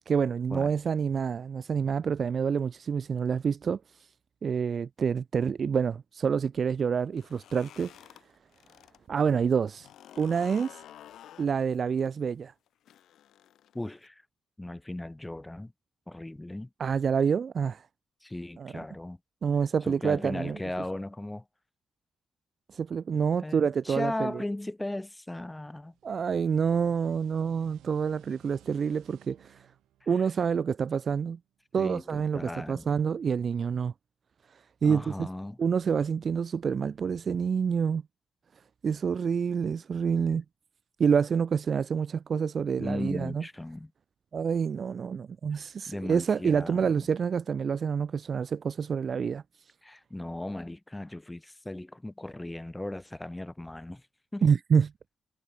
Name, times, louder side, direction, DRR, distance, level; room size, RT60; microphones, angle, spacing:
voice 1, 0.0-3.8 4.4-7.9 9.1-9.9 10.2-10.8 11.4-12.5 16.8-17.8 18.6-18.7 19.4-20.6 22.7-24.3 26.0-29.7 30.1-31.4 31.7-33.9 34.8-35.3 35.6-38.0 38.8-40.4 41.0-43.4 44.3-49.4 54.4-54.9, right 6 dB, 55° right, 0.3 m, -27 dB
Gate door drawbridge wooden creaky opens closes hinge, 7.0-9.0 9.3-14.1, left 11 dB, 75° left, 2.2 m, -51 dB
voice 2, 13.7-14.2 14.6-15.7 16.1-16.7 18.2-19.2 19.8-21.5 23.4-25.9 30.0-30.1 31.8-32.9 34.8-35.6 42.8-43.9 45.5-47.1 49.8-54.1 54.3-54.5, left 1 dB, 15° left, 5.1 m, -37 dB
sound 1, 25.9-31.2, right 14 dB, 85° right, 7.0 m, -58 dB
supercardioid pair, 55°, 0 cm